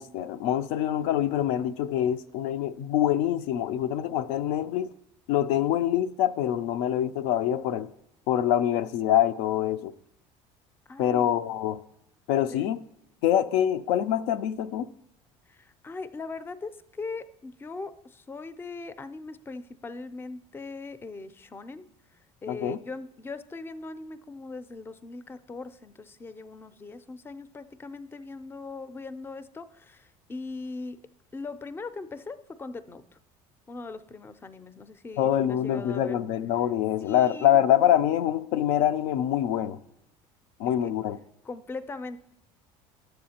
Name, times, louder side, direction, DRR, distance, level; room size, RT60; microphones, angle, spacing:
voice 1, 0.0-4.9 5.3-7.9 8.3-9.9 11.0-11.8 12.3-12.8 13.2-14.9 22.5-22.8 35.2-39.8 40.6-41.2, left 11 dB, 85° left, 0.4 m, -25 dB
voice 2, 10.9-11.3 12.4-12.6 15.5-21.9 22.4-31.0 31.3-33.2 33.7-36.2 37.0-37.5 40.7-40.9 41.4-42.2, left 3 dB, 15° left, 0.4 m, -40 dB
12.0 x 7.6 x 2.8 m
supercardioid pair, 105°, 13 cm